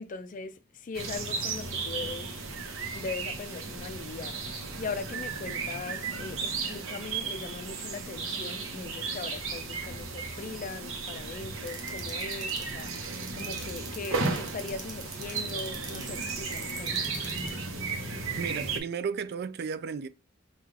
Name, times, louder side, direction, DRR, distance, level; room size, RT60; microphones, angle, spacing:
voice 1, 0.0-2.5 2.9-17.1, left 4 dB, 40° left, 0.4 m, -40 dB
sound 1, 0.9-18.8, right 4 dB, 80° right, 1.0 m, -35 dB
sound 2, 11.7-17.5, right 5 dB, 20° right, 1.0 m, -42 dB
voice 2, 18.4-20.1, right 6 dB, 50° right, 0.3 m, -34 dB
5.5 x 2.4 x 3.2 m
head